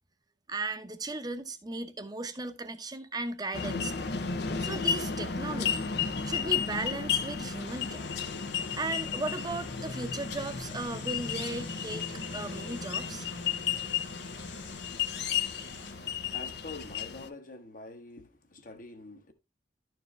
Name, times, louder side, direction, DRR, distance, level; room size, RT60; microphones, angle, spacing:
voice 1, 0.5-4.1 4.6-5.9 6.2-8.1 8.7-12.0 12.3-13.3, right 2 dB, 20° right, 0.8 m, -36 dB
sound 1, 3.5-17.3, left 7 dB, 60° left, 0.7 m, -33 dB
sound 2, 7.6-15.9, left 7 dB, 85° left, 1.2 m, -49 dB
sound 3, 11.5-16.9, right 3 dB, 60° right, 1.4 m, -53 dB
voice 2, 15.6-19.3, left 2 dB, 45° left, 1.2 m, -46 dB
12.0 x 4.6 x 3.2 m
head